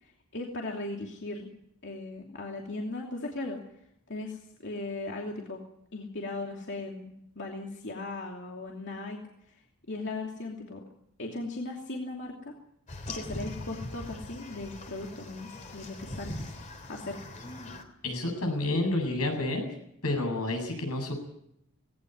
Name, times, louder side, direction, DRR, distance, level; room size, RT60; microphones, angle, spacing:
voice 1, 0.0-1.5 1.8-3.6 4.1-5.6 5.9-9.2 9.5-9.6 9.9-10.8 11.2-12.5 13.1-16.3 16.9-17.2, left 2 dB, 55° left, 0 dB, 2.8 m, -38 dB
sound 1, 12.9-17.8, left 1 dB, 35° left, 3.3 m, -41 dB
voice 2, 18.0-19.7 20.0-21.1, left 2 dB, 85° left, 5 dB, 7.8 m, -29 dB
19.0 x 18.0 x 9.4 m, 0.76 s
head